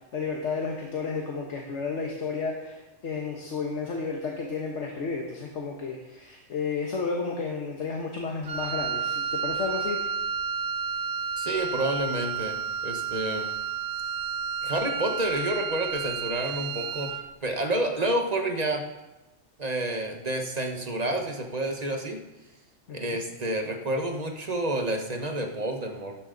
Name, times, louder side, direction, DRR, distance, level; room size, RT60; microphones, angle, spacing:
voice 1, 0.1-10.0 22.9-23.2, left 4 dB, 65° left, 0 dB, 1.5 m, -32 dB
Wind instrument woodwind instrument, 8.4-17.3, right 6 dB, 60° right, 0.5 m, -31 dB
voice 2, 11.4-13.5 14.6-17.1 17.4-18.8 19.6-22.2 22.9-26.2, right 1 dB, 35° right, 3 dB, 1.2 m, -29 dB
13.0 x 10.5 x 3.9 m, 1.0 s
omnidirectional pair, 1.3 m